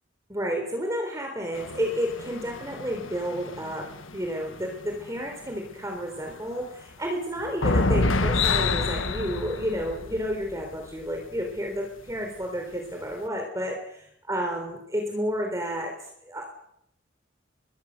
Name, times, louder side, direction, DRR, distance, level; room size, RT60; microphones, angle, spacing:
voice 1, 0.3-15.9 16.2-16.5, equal, 15° right, 2 dB, 3.9 m, -31 dB
sound 1, 1.5-5.3 5.7-5.8 6.2-6.6 7.4-10.7 11.5-11.6 12.1-12.2, left 3 dB, 85° left, 1.5 m, -28 dB
26.0 x 21.5 x 6.7 m, 0.76 s
head